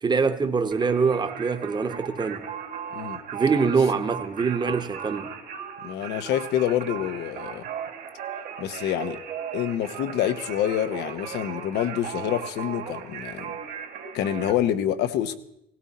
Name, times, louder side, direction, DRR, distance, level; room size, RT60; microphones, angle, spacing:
voice 1, 0.0-2.5 3.3-5.3, right 5 dB, 25° right, 1.1 m, -24 dB
Singing, 0.7-14.5, right 8 dB, 90° right, 2.8 m, -37 dB
voice 2, 5.8-7.6 8.6-9.2 9.5-13.5 14.1-15.3, left 11 dB, 85° left, 1.1 m, -27 dB
17.5 x 16.5 x 4.2 m
cardioid pair, 110°, 17 cm